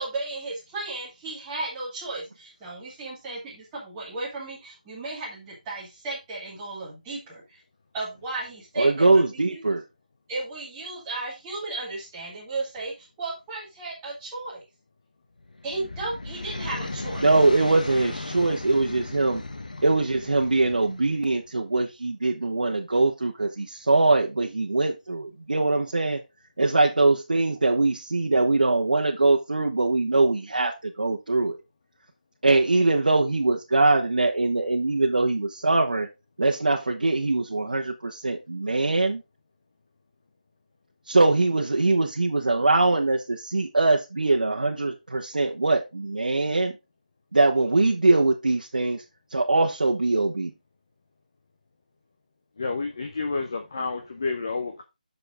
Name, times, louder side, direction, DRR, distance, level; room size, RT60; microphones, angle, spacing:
voice 1, 0.0-7.6 7.9-9.8 10.3-14.6 15.6-17.2, right 2 dB, 5° right, 1.9 m, -35 dB
voice 2, 8.8-9.8 17.2-19.4 19.8-26.2 26.6-31.6 32.4-36.1 36.4-39.2 41.1-46.8 47.3-49.0 49.3-50.5, right 2 dB, 70° right, 1.3 m, -22 dB
sound 1, 15.4-21.5, left 2 dB, 65° left, 1.2 m, -36 dB
voice 3, 52.6-54.8, left 4 dB, 25° left, 0.7 m, -30 dB
7.1 x 6.7 x 3.6 m
figure-of-eight pair, 180°, 5 cm